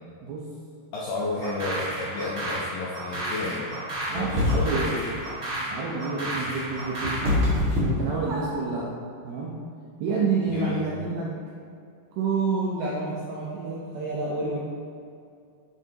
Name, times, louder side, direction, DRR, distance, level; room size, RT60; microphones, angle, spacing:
voice 1, 0.9-3.7 4.1-4.7 10.5-10.9, left 3 dB, 80° left, -6 dB, 2.1 m, -31 dB
sound 1, 1.4-7.3, right 1 dB, 45° right, 2.3 m, -32 dB
sound 2, 4.1-4.9 6.4-8.7, left 2 dB, 60° right, 1.3 m, -25 dB
voice 2, 4.1-5.2 5.6-7.3 7.7-8.9 9.2-9.6 10.0-11.3 12.1-14.6, right 4 dB, 80° right, -4 dB, 2.2 m, -29 dB
9.5 x 7.9 x 2.9 m, 2.4 s
omnidirectional pair, 5.4 m